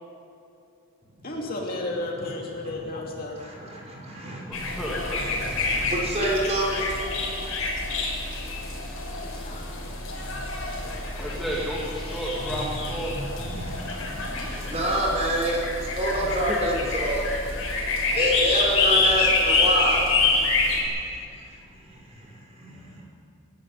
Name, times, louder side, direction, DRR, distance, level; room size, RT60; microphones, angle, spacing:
voice 1, 1.2-3.4 8.9-9.7 10.7-11.4, left 2 dB, 40° left, -1 dB, 2.8 m, -34 dB
voice 2, 3.4-4.7 5.6-6.9 8.8-9.4 10.2-11.2 13.5-17.2 18.1-20.0 21.4-23.0, equal, 30° right, -3 dB, 5.9 m, -28 dB
sound 1, 4.5-20.8, left 3 dB, 70° left, 5.2 m, -27 dB
voice 3, 4.5-5.4 10.9-13.4 13.8-14.6 16.2-16.6, equal, ahead, -6 dB, 2.7 m, -34 dB
25.5 x 13.0 x 9.5 m, 2.6 s
head